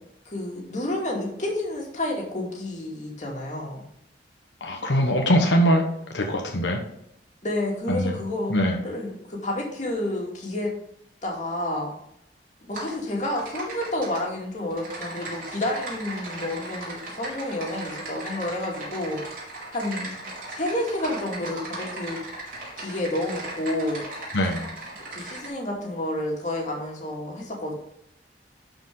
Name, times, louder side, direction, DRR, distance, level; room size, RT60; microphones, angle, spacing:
voice 1, 0.3-3.9 7.4-8.5 8.8-10.7 11.2-11.9 12.6-19.2 19.7-20.1 20.5-22.2 22.8-24.0 25.1-27.7, left 1 dB, 45° left, -2 dB, 2.4 m, -30 dB
voice 2, 4.6-5.8 6.1-6.8 7.9-8.2 8.5-8.8 24.3-24.6, equal, 90° left, 2 dB, 1.1 m, -22 dB
Typing, 12.8-12.9 13.2-14.2 14.7-25.5, right 2 dB, 50° right, 3.6 m, -37 dB
11.5 x 5.1 x 3.8 m, 0.75 s
head